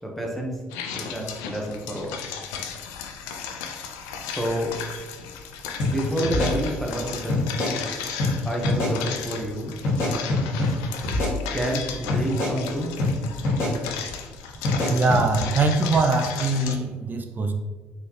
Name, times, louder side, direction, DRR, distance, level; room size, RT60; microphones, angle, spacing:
voice 1, 0.0-0.6 0.9-2.2 4.2-4.7 5.8-7.5 8.4-9.8 11.5-12.9, right 1 dB, 5° left, -1 dB, 1.1 m, -29 dB
sound 1, 0.7-16.8, left 6 dB, 80° left, 0.4 m, -35 dB
sound 2, 5.8-5.9 6.2-7.0 7.3-7.7 8.2-8.3 8.6-8.9 9.8-10.7 11.0-11.8 12.1-12.5 13.0-13.1 13.4-13.7 14.6-15.2, left 2 dB, 65° left, 1.4 m, -24 dB
voice 2, 14.9-17.5, right 3 dB, 40° right, 5 dB, 0.5 m, -22 dB
4.1 x 3.3 x 3.0 m, 1.3 s
hypercardioid pair, 55°, 5 cm